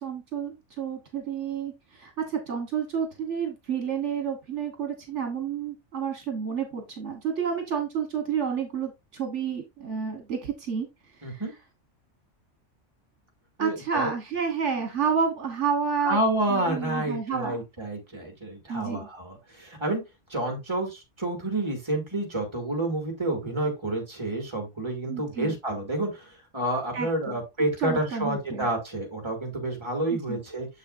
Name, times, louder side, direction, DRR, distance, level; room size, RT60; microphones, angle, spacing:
voice 1, 0.0-10.9 11.2-11.4 13.6-16.2 16.5-17.6 18.7-19.1 25.1-25.5 26.9-27.4 27.8-28.7 30.1-30.4, right 6 dB, 70° right, 4 dB, 1.6 m, -30 dB
voice 2, 11.2-11.5 13.6-14.1 16.0-20.0 20.3-30.7, right 1 dB, 20° right, 3 dB, 2.4 m, -29 dB
7.0 x 6.5 x 2.6 m, 0.22 s
omnidirectional pair, 1.3 m